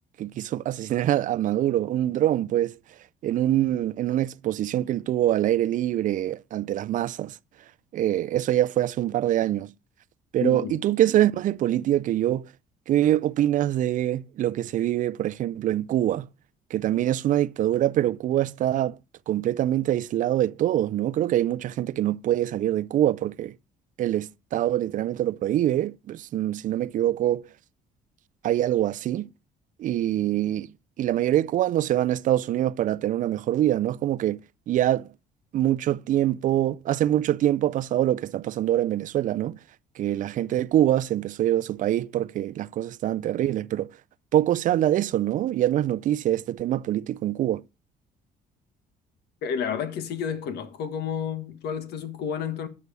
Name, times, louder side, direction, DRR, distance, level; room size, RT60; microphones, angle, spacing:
voice 1, 0.2-2.8 3.2-7.4 7.9-9.7 10.3-12.5 12.9-16.3 16.7-19.0 19.3-23.5 24.0-27.4 28.4-29.3 29.8-30.7 31.0-34.4 34.7-35.1 35.5-39.6 40.0-43.9 44.3-47.6, right 12 dB, 50° right, 0.4 m, -24 dB
voice 2, 10.4-10.8 49.4-52.7, left 7 dB, 75° left, 1.3 m, -30 dB
9.5 x 6.8 x 4.7 m
cardioid pair, 110°, 17 cm